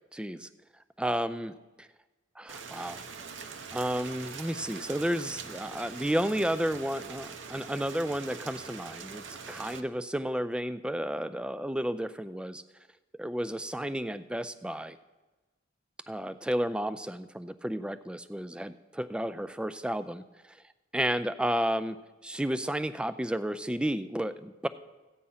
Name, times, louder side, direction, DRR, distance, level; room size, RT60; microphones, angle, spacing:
voice 1, 0.1-0.5 1.0-1.9 2.4-3.0 3.7-12.6 13.2-15.0 16.1-20.2 20.5-20.6 20.9-22.0 22.2-24.7, equal, 5° right, 13 dB, 0.3 m, -32 dB
Rain, 2.5-9.8, right 5 dB, 65° right, 0.8 m, -43 dB
14.5 x 8.8 x 5.6 m, 1.2 s
head